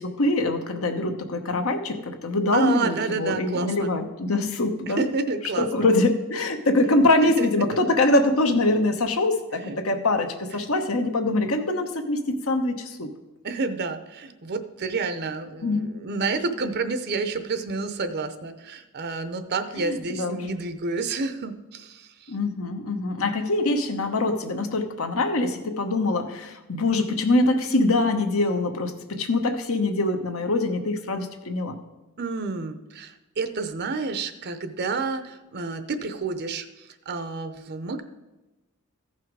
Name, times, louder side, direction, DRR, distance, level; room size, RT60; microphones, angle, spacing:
voice 1, 0.0-5.1 5.6-13.1 15.6-16.0 19.8-20.5 22.3-31.8, left 2 dB, 65° left, 7 dB, 1.1 m, -24 dB
voice 2, 2.5-3.9 4.9-5.9 7.4-7.5 9.6-9.8 10.5-10.7 13.4-22.1 32.2-38.0, right 4 dB, 45° right, 10 dB, 0.7 m, -29 dB
15.0 x 5.8 x 4.7 m, 1.1 s
head